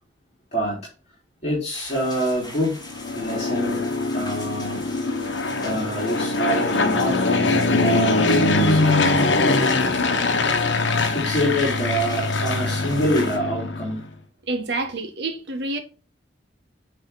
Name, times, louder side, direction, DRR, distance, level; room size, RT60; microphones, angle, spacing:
voice 1, 1.4-2.8 3.1-3.8 4.1-4.9 5.5-9.5 11.0-14.0, equal, 40° left, 3.0 m, -26 dB
sound 1, 1.7-13.4, left 2 dB, 25° left, 3.1 m, -40 dB
Fixed-wing aircraft airplane, 2.9-14.0, left 3 dB, 85° left, 1.0 m, -22 dB
voice 2, 14.5-15.8, right 2 dB, 65° right, 1.3 m, -27 dB
9.0 x 3.4 x 3.8 m
head